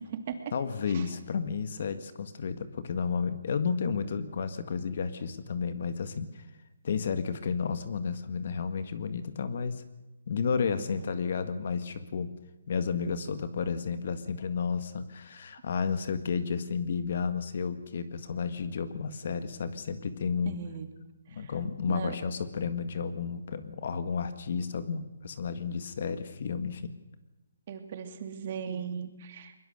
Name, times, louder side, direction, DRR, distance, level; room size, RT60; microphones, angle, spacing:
voice 1, 0.0-0.5 0.9-1.1 10.6-10.9 20.4-20.9 21.3-21.5 21.9-22.1 27.7-29.5, right 7 dB, 40° right, 6 dB, 2.9 m, -38 dB
voice 2, 0.5-6.4 6.8-9.8 10.3-12.3 12.7-20.6 21.3-26.9, left 5 dB, 50° left, 11 dB, 1.8 m, -32 dB
22.0 x 22.0 x 6.7 m, 1.0 s
hypercardioid pair, 160°, 0 cm